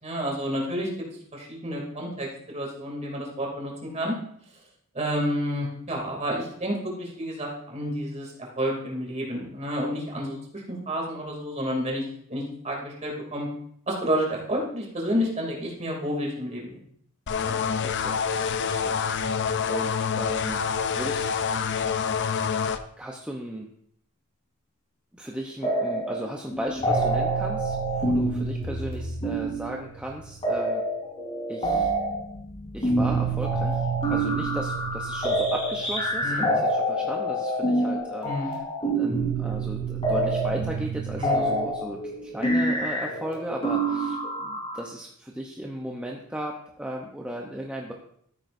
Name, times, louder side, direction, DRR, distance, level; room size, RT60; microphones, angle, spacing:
voice 1, 0.0-0.9 1.3-4.1 4.9-8.3 8.6-12.0 12.3-13.5 13.9-16.8 17.4-17.6 36.2-36.4 38.2-38.5 41.2-41.5, equal, 30° right, -1 dB, 2.8 m, -30 dB
sound 1, 17.3-22.8, left 6 dB, 55° left, 0.5 m, -27 dB
voice 2, 17.8-18.2 18.6-19.3 19.7-21.2 23.0-23.7 25.1-30.8 31.5-31.9 32.7-47.9, right 1 dB, 5° right, -1 dB, 0.8 m, -36 dB
sound 2, 25.6-26.2 26.5-44.8, right 2 dB, 25° left, 3.2 m, -27 dB
14.0 x 9.1 x 2.7 m, 0.67 s
head